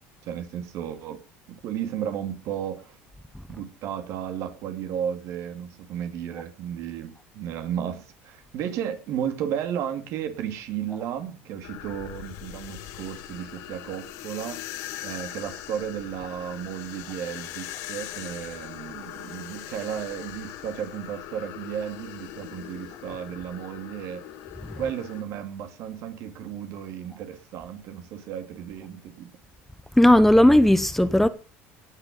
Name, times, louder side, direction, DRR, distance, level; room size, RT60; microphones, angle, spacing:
voice 1, 0.2-1.2 1.5-3.0 3.5-14.6 15.0-24.2 24.8-29.3, right 9 dB, 65° right, 2.6 m, -33 dB
sound 1, 11.6-25.2, left 13 dB, 70° left, 1.7 m, -40 dB
voice 2, 30.0-31.3, left 1 dB, 5° left, 0.9 m, -16 dB
18.0 x 6.9 x 5.4 m
supercardioid pair, 110°, 5 cm